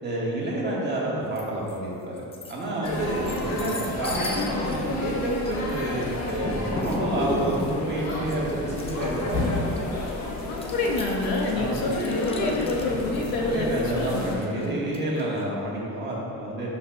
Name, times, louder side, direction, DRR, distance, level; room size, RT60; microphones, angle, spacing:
voice 1, 0.0-9.8 11.5-11.8 13.4-16.7, right 1 dB, 30° right, -5 dB, 1.5 m, -29 dB
sound 1, 1.4-1.8 2.2-15.4, left 2 dB, 15° left, 0.4 m, -36 dB
sound 2, 2.8-14.3, left 2 dB, 50° left, 1.3 m, -31 dB
voice 2, 7.1-7.5 10.5-14.9, left 2 dB, 75° left, -1 dB, 1.3 m, -28 dB
11.0 x 5.8 x 2.3 m, 2.6 s
cardioid pair, 145°, 35 cm